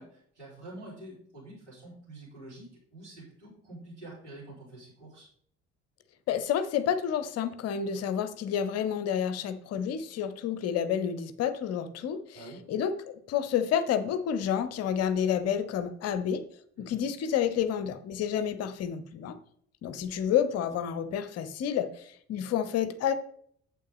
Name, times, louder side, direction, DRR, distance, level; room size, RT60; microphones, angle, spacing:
voice 1, 0.0-5.3 12.3-12.6 16.8-17.0, right 2 dB, 85° right, -8 dB, 4.1 m, -47 dB
voice 2, 6.3-12.4 12.7-16.4 16.8-19.4 19.8-23.1, left 8 dB, 45° left, 12 dB, 0.8 m, -29 dB
8.6 x 7.5 x 3.6 m, 0.63 s
figure-of-eight pair, 50°, 34 cm